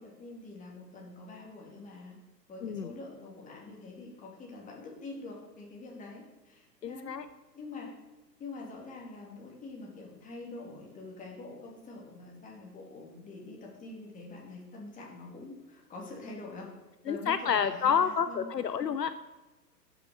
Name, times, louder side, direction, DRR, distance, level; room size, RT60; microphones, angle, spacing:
voice 1, 0.0-2.2 2.5-7.1 7.5-7.9 8.4-16.7 17.1-18.5, left 3 dB, 15° left, -2 dB, 2.8 m, -45 dB
voice 2, 2.6-2.9 6.8-7.3 17.1-19.1, left 7 dB, 75° left, 12 dB, 0.7 m, -29 dB
11.5 x 6.8 x 6.6 m, 1.1 s
figure-of-eight pair, 110°, 50 cm